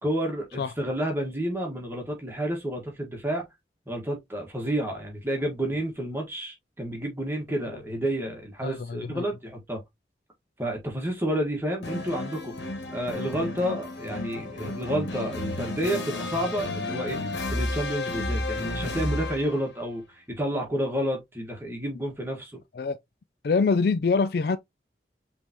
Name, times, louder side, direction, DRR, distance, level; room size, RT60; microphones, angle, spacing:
voice 1, 0.0-3.4 3.9-9.8 10.6-12.5 12.9-17.2 17.5-22.6, right 1 dB, 10° right, 1.6 m, -30 dB
voice 2, 8.6-9.2 22.7-23.0 23.4-24.6, left 4 dB, 55° left, 0.4 m, -24 dB
sound 1, 11.8-19.7, left 2 dB, 85° left, 1.8 m, -32 dB
5.3 x 3.4 x 2.9 m
head